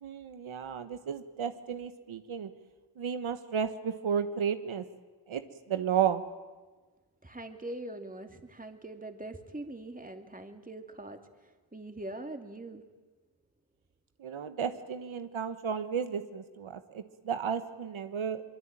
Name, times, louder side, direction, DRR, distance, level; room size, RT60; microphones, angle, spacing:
voice 1, 0.0-2.5 3.0-4.8 5.3-5.4 5.7-6.2 14.2-18.4, right 7 dB, 75° right, 9 dB, 1.4 m, -33 dB
voice 2, 7.2-12.8, right 1 dB, 15° right, 6 dB, 2.6 m, -43 dB
25.0 x 22.5 x 9.0 m, 1.3 s
cardioid pair, 70°, 48 cm